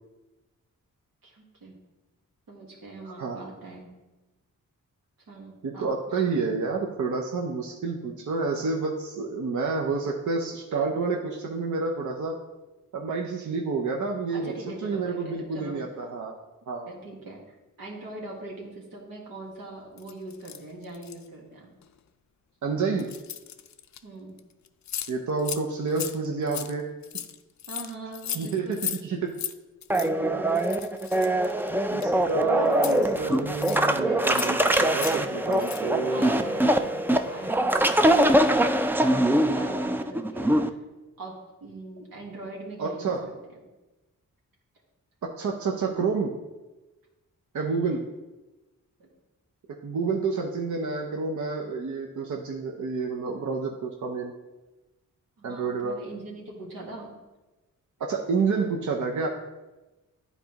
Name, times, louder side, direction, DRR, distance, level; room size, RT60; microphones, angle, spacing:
voice 1, 1.2-1.8 2.5-3.9 5.3-6.4 14.3-15.8 16.9-21.7 24.0-24.4 27.7-28.9 34.0-38.2 39.0-40.8 41.2-43.2 43.5-43.6 47.7-47.9 49.0-49.1 55.4-57.1, right 2 dB, 85° right, -2 dB, 1.5 m, -42 dB
voice 2, 5.6-12.4 12.9-14.5 14.8-16.4 16.7-16.9 22.6-23.1 25.1-26.9 28.3-29.3 31.9-36.3 42.8-43.2 45.2-46.4 47.5-48.0 49.8-54.3 55.4-56.0 58.0-59.3, right 4 dB, 60° right, 1 dB, 0.7 m, -29 dB
sound 1, 20.0-21.3 21.8-22.0 23.0-24.0 24.4-24.5 24.7-25.1 25.4-25.6 25.9-29.0 29.3-29.5 29.8-30.1 30.5-32.3 32.7-33.9 34.2-34.6 34.9-35.2 35.5-35.9, left 9 dB, 60° left, 0.5 m, -36 dB
sound 2, 29.9-40.7, right 1 dB, 5° right, 0.4 m, -23 dB
10.0 x 4.0 x 2.9 m, 1.1 s
cardioid pair, 50°, 33 cm